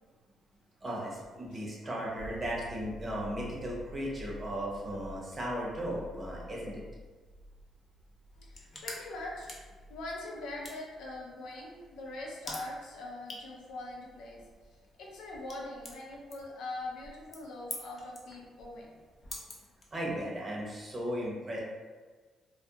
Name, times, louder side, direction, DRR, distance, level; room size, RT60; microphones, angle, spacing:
voice 1, 0.8-6.8 19.9-21.6, equal, 30° right, -4 dB, 0.8 m, -36 dB
sound 1, 2.2-15.7 18.4-18.5, equal, 70° right, 0.9 m, -51 dB
voice 2, 8.3-9.5 9.9-14.4 15.0-18.9, left 2 dB, 85° left, -2 dB, 0.5 m, -42 dB
sound 2, 8.3-20.4, left 2 dB, 35° left, 0.5 m, -49 dB
2.3 x 2.2 x 2.8 m, 1.4 s
cardioid pair, 90°, 0 cm